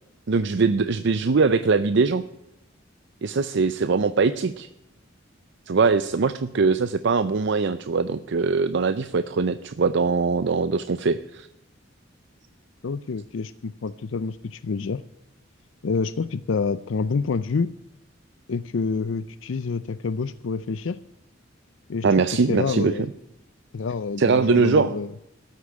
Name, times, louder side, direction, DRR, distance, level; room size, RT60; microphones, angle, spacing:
voice 1, 0.3-2.2 3.2-4.7 5.7-11.5 22.0-22.9 24.2-24.9, right 4 dB, 65° right, 12 dB, 0.5 m, -22 dB
voice 2, 12.8-15.0 15.8-17.7 18.5-21.0 21.9-22.1 22.5-23.1 23.7-25.1, left 4 dB, 80° left, 14 dB, 0.5 m, -27 dB
13.5 x 8.3 x 8.9 m, 0.84 s
head